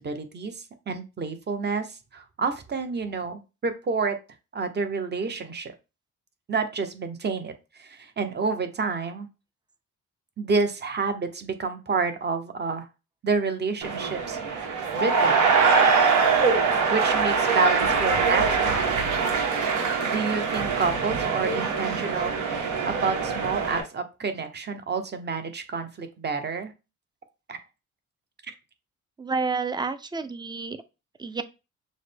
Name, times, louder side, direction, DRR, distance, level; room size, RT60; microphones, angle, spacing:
voice 1, 0.0-4.2 4.5-5.7 6.5-9.3 10.4-12.9 13.2-15.4 16.9-19.0 20.0-26.7 27.5-27.6 28.5-28.6, right 4 dB, 35° right, 8 dB, 0.9 m, -29 dB
sound 1, 13.8-23.8, right 5 dB, 75° right, 1.2 m, -23 dB
voice 2, 29.2-30.8 31.2-31.4, right 4 dB, 15° right, 11 dB, 0.5 m, -29 dB
6.3 x 2.1 x 3.4 m, 0.28 s
cardioid pair, 90°, 30 cm